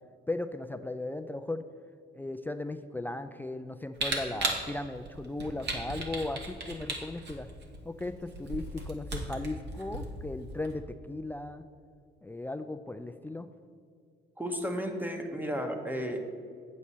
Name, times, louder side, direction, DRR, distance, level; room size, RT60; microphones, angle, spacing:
voice 1, 0.3-1.6 2.1-7.5 7.8-11.6 12.2-13.5, left 2 dB, 10° left, 9 dB, 0.3 m, -37 dB
Camera, 4.0-10.7, right 2 dB, 60° right, 1.5 m, -36 dB
voice 2, 14.4-16.2, equal, 10° right, 4 dB, 1.2 m, -33 dB
8.3 x 7.3 x 4.2 m, 2.3 s
cardioid pair, 90°, 20 cm